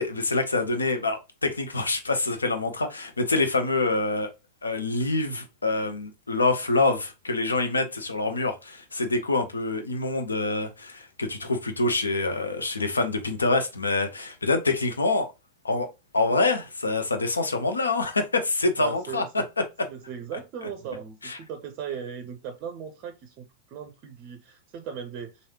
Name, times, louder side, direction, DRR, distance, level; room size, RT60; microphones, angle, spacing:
voice 1, 0.0-4.3 4.6-15.3 15.6-15.9 16.1-19.2 21.2-21.4, left 3 dB, 75° left, 0.5 m, -26 dB
voice 2, 18.8-19.4 19.9-25.4, right 7 dB, 40° right, 0.5 m, -38 dB
3.2 x 2.6 x 2.8 m
figure-of-eight pair, 90°, 0 cm